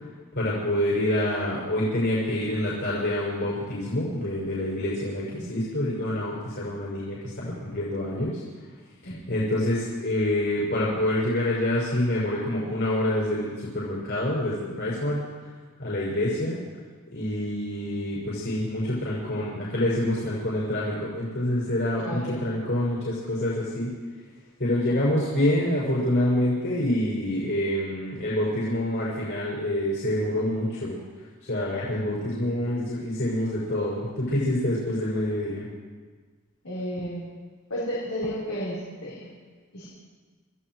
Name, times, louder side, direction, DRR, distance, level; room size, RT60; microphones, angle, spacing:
voice 1, 0.3-8.4 9.0-15.3 15.8-16.6 17.1-23.9 24.6-31.0 31.4-35.7, left 1 dB, 60° left, -7 dB, 6.2 m, -27 dB
voice 2, 22.0-22.4 36.6-37.3 37.7-39.3 39.7-39.9, equal, 85° left, -7 dB, 4.2 m, -32 dB
27.5 x 15.5 x 3.2 m, 1.4 s
head